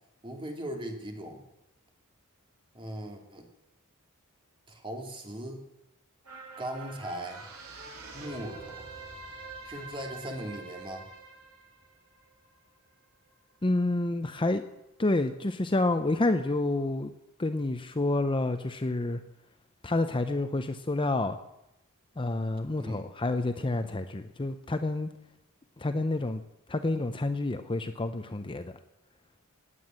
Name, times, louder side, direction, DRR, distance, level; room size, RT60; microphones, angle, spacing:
voice 1, 0.2-1.5 2.7-3.5 4.7-5.6 6.6-7.4 8.1-8.8 9.6-11.1 22.8-23.0, right 1 dB, 25° right, 2 dB, 2.8 m, -39 dB
sound 1, 6.2-12.9 13.3-13.4, right 3 dB, 70° right, 3.6 m, -45 dB
voice 2, 13.6-14.6 15.0-17.1 17.4-19.2 19.8-21.4 22.2-25.1 25.8-26.4 26.7-28.7, left 2 dB, 25° left, 8 dB, 0.7 m, -29 dB
18.5 x 9.3 x 7.8 m, 0.87 s
head